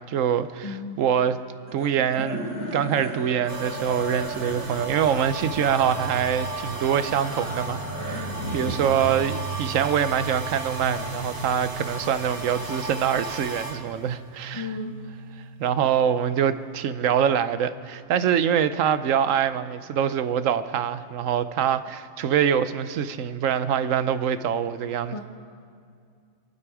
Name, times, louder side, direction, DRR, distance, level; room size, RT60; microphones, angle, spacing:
voice 1, 0.0-1.4 1.7-2.5 2.7-14.7 15.6-25.2, right 8 dB, 75° right, 1.1 m, -24 dB
voice 2, 0.6-1.0 8.1-8.5 14.5-14.9 25.1-25.2, left 3 dB, 25° left, 1.2 m, -35 dB
sound 1, 1.7-12.2, right 2 dB, 15° right, 3.8 m, -36 dB
sound 2, 3.5-16.2 16.5-18.9, right 2 dB, 40° right, 1.9 m, -36 dB
26.0 x 11.0 x 4.8 m
omnidirectional pair, 1.4 m